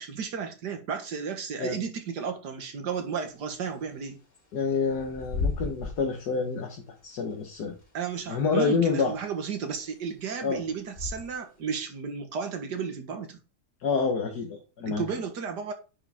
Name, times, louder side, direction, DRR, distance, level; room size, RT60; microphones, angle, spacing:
voice 1, 0.0-4.2 7.9-13.4 14.8-15.7, right 6 dB, 80° right, 2.0 m, -33 dB
Bird / Wind, 2.9-11.6, left 4 dB, 50° left, 3.7 m, -38 dB
voice 2, 4.5-6.8 7.0-7.7 8.3-9.1 10.4-10.6 13.8-15.0, left 5 dB, 70° left, 1.8 m, -27 dB
9.5 x 5.0 x 3.5 m
omnidirectional pair, 1.8 m